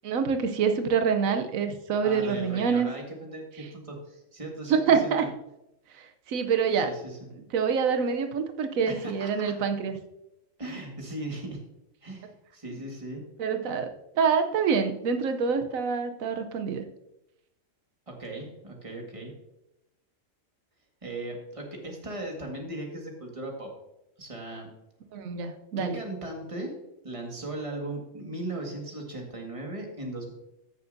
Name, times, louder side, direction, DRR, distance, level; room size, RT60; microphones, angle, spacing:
voice 1, 0.0-2.9 4.7-5.3 5.9-6.9 7.5-9.9 13.4-13.9 14.2-16.8 25.1-26.0, right 6 dB, 90° right, 7 dB, 1.2 m, -26 dB
voice 2, 2.0-5.1 6.9-7.2 8.9-9.5 10.6-11.6 12.0-13.2 18.1-19.3 21.0-23.7 24.2-24.7 25.8-26.7 27.0-30.3, right 2 dB, 25° right, 1 dB, 1.8 m, -37 dB
14.5 x 6.9 x 2.6 m, 0.86 s
omnidirectional pair, 1.4 m